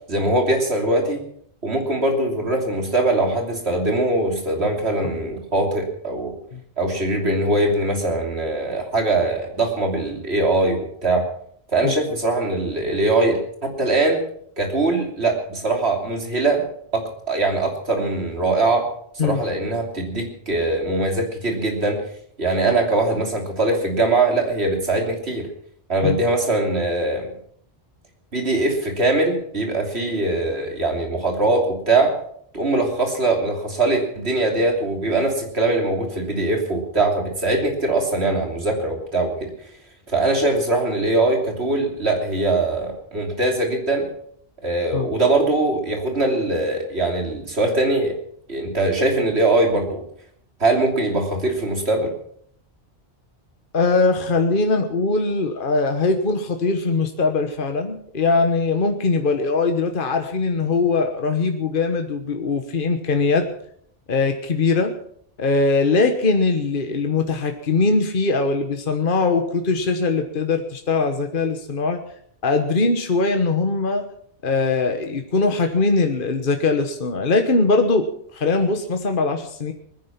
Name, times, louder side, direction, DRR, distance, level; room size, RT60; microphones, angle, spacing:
voice 1, 0.1-1.2 1.6-6.4 6.8-11.2 11.7-14.2 14.6-16.6 16.9-18.9 19.2-22.0 22.4-25.5 25.9-27.3 28.3-32.1 32.5-39.5 40.1-44.1 44.6-48.2 48.5-50.1 50.6-52.1, right 2 dB, 70° right, 2 dB, 3.4 m, -21 dB
voice 2, 53.7-63.5 64.1-64.9 65.4-72.0 72.4-74.0 74.4-78.1 78.3-79.7, left 3 dB, 50° left, 5 dB, 1.4 m, -21 dB
21.0 x 10.5 x 5.8 m, 0.64 s
omnidirectional pair, 1.1 m